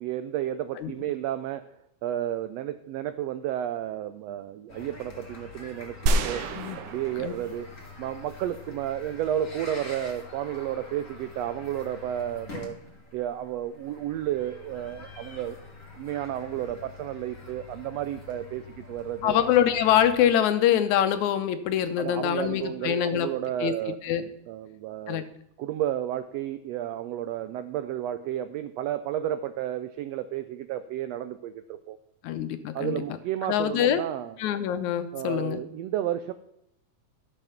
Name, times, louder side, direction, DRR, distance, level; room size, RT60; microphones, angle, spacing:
voice 1, 0.0-1.6 2.0-6.5 6.8-7.7 8.0-12.8 13.1-15.6 15.9-19.4 22.0-24.0 24.5-25.3 25.6-32.0 32.7-34.3 35.1-36.3, right 11 dB, 90° right, 11 dB, 1.4 m, -32 dB
sound 1, 4.7-20.3, left 4 dB, 30° left, 2.1 m, -46 dB
sound 2, 6.1-8.3, right 2 dB, 70° right, 1.4 m, -29 dB
voice 2, 19.2-23.3 23.6-24.3 25.1-25.2 32.2-33.0 33.4-34.0 34.4-35.6, left 10 dB, 75° left, 10 dB, 2.1 m, -24 dB
12.5 x 6.7 x 5.7 m, 0.81 s
omnidirectional pair, 3.5 m